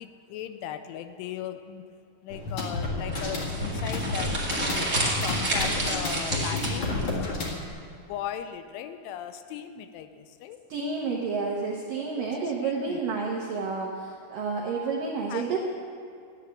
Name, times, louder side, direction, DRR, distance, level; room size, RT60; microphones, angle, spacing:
voice 1, 0.0-1.8 2.2-7.4 7.9-10.6 12.2-12.4 12.6-13.0 15.3-15.6, left 10 dB, 85° left, 9 dB, 3.0 m, -38 dB
sound 1, 2.3-7.7, left 2 dB, 60° left, 1.2 m, -30 dB
sound 2, 3.1-7.1, right 2 dB, 50° right, 0.8 m, -30 dB
voice 2, 10.7-15.6, right 4 dB, 75° right, -2 dB, 2.0 m, -30 dB
13.0 x 9.0 x 9.0 m, 2.4 s
omnidirectional pair, 5.6 m